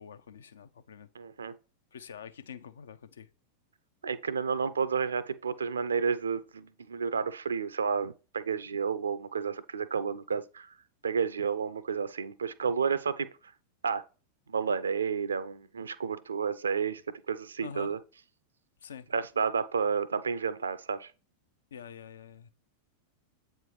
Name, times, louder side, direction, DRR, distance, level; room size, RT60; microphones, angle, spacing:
voice 1, 0.0-1.1 1.9-3.3 17.6-17.9 18.8-19.1 21.7-22.5, left 7 dB, 65° left, 0.5 m, -46 dB
voice 2, 1.2-1.6 4.0-10.7 11.0-13.3 13.8-14.0 14.5-17.0 17.3-18.0 19.1-21.1, right 6 dB, 70° right, 0.5 m, -31 dB
8.0 x 4.5 x 3.1 m
figure-of-eight pair, 90°, 0 cm